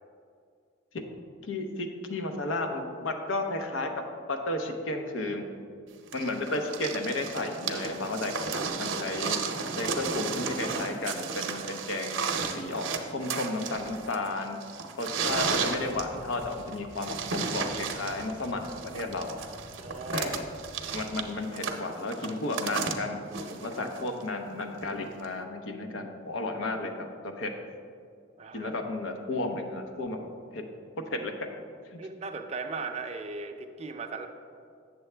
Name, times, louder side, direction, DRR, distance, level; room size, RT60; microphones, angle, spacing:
voice 1, 1.4-3.9 4.3-5.4 6.1-9.4 9.8-12.2 12.5-14.6 15.0-19.4 20.1-20.4 20.9-23.2 23.5-27.5 28.5-30.6 31.1-31.3, left 2 dB, 85° left, 5 dB, 0.7 m, -33 dB
sound 1, 6.1-24.2 25.2-25.3, right 5 dB, 80° right, 0.6 m, -34 dB
sound 2, 15.2-21.3, right 1 dB, 65° left, 1.4 m, -50 dB
voice 2, 19.8-20.3 20.8-21.0 28.4-28.7 32.0-34.3, right 4 dB, 35° right, 6 dB, 0.5 m, -37 dB
8.0 x 6.9 x 3.3 m, 2.3 s
head